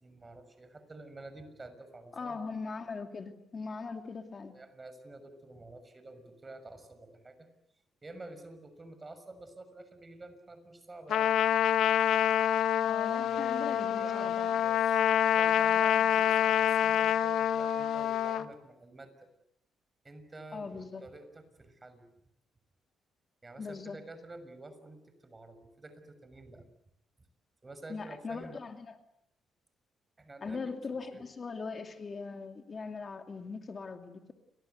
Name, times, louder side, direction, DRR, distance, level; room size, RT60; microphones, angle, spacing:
voice 1, 0.0-2.4 4.4-7.5 8.0-11.3 13.0-15.0 15.3-19.3 20.0-22.1 23.4-26.6 27.6-28.6 30.2-31.2, right 2 dB, 25° right, 11 dB, 6.4 m, -49 dB
voice 2, 2.1-4.5 12.8-14.5 20.5-21.1 23.6-24.0 27.9-29.0 30.4-34.3, left 4 dB, 40° left, 5 dB, 2.6 m, -40 dB
Trumpet, 11.1-18.4, left 10 dB, 70° left, 1.2 m, -27 dB
29.5 x 25.0 x 8.1 m, 0.80 s
cardioid pair, 90°, 0 cm